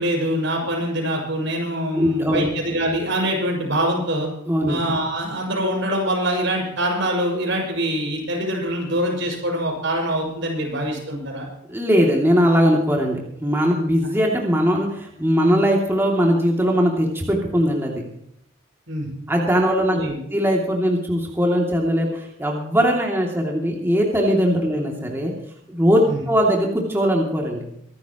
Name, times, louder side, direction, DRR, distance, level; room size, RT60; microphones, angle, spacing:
voice 1, 0.0-4.3 4.7-11.5 18.9-19.1 19.9-20.2 26.1-26.2, right 1 dB, 65° right, 0 dB, 6.6 m, -24 dB
voice 2, 1.9-2.5 4.5-4.8 11.7-17.9 19.3-25.3 25.7-27.6, equal, 10° right, -1 dB, 2.8 m, -20 dB
25.0 x 12.5 x 3.1 m, 0.74 s
head